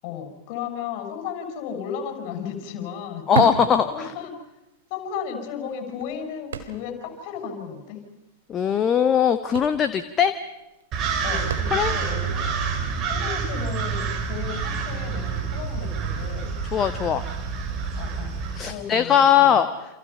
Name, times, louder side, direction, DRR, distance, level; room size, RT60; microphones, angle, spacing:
voice 1, 0.0-3.3 3.8-4.3 4.9-8.0 11.2-12.5 13.1-16.5 18.0-18.4 18.7-19.6, left 7 dB, 45° left, 6 dB, 6.9 m, -34 dB
sound 1, 1.6-1.7 2.0-4.6 4.9-5.0 5.6-7.2 7.4-7.5 7.8-8.0 8.9-9.1 9.3-12.2 12.8-12.9, right 7 dB, 65° right, 2.9 m, -33 dB
voice 2, 3.3-4.1 8.5-10.3 11.7-12.0 16.7-17.2 18.6-19.7, left 8 dB, 25° left, 10 dB, 1.4 m, -20 dB
sound 2, 10.9-18.6, right 6 dB, 35° right, 5.5 m, -28 dB
29.0 x 28.0 x 5.7 m, 0.98 s
figure-of-eight pair, 90°, 0 cm